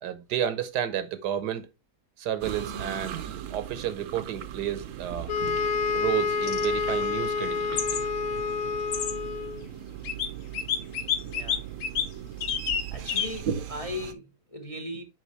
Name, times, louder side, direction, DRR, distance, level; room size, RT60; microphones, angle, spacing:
voice 1, 0.0-1.7 2.2-3.2 3.5-5.3 5.9-8.0 13.5-13.6, right 10 dB, 85° right, 1.4 m, -31 dB
sound 1, 2.4-14.1, right 10 dB, 60° right, 0.9 m, -39 dB
sound 2, 5.3-9.7, left 5 dB, 65° left, 1.2 m, -28 dB
sound 3, 6.4-6.7 7.8-8.0 8.9-9.1 10.0-10.3 10.5-12.1 12.4-12.8 13.1-13.4, left 8 dB, 85° left, 1.5 m, -28 dB
voice 2, 11.2-11.6 12.9-15.0, left 1 dB, 30° left, 0.8 m, -38 dB
6.4 x 5.3 x 3.1 m
omnidirectional pair, 1.7 m